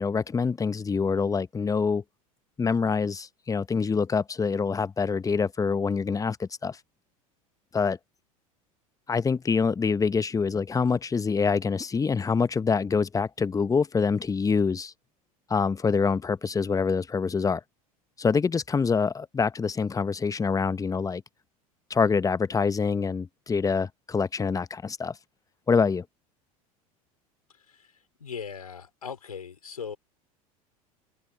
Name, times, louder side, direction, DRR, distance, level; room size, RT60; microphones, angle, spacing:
voice 1, 0.0-2.0 2.6-6.8 7.7-8.0 9.1-14.9 15.5-17.6 18.2-21.2 21.9-25.2 25.7-26.0, left 5 dB, 20° left, 1.0 m, -25 dB
voice 2, 28.2-30.0, left 6 dB, 90° left, 4.6 m, -38 dB
open air
hypercardioid pair, 80°, 19 cm